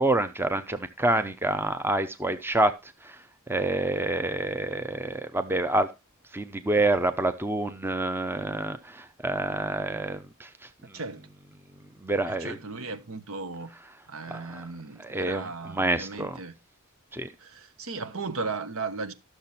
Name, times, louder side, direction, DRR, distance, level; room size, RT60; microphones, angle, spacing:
voice 1, 0.0-5.9 6.3-11.0 12.0-12.6 14.3-14.7 15.0-16.4 17.1-17.3, right 2 dB, 10° right, 0.7 m, -28 dB
voice 2, 10.9-11.3 12.3-13.7 14.1-16.6 17.4-19.1, right 4 dB, 70° right, 1.1 m, -36 dB
12.5 x 6.7 x 4.3 m
head